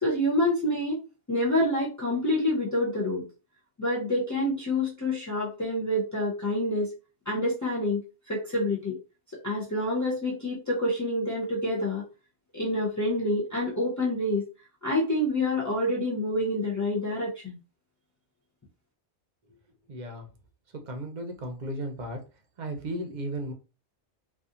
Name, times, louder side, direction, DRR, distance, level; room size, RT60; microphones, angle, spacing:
voice 1, 0.0-1.0 1.3-3.3 3.8-6.9 7.3-9.0 9.4-12.0 12.5-14.4 14.8-17.6, left 1 dB, 30° left, -6 dB, 0.3 m, -27 dB
voice 2, 19.9-20.3 20.9-22.2 22.6-23.5, right 1 dB, 50° right, 4 dB, 0.6 m, -35 dB
2.7 x 2.4 x 2.4 m, 0.33 s
omnidirectional pair, 1.2 m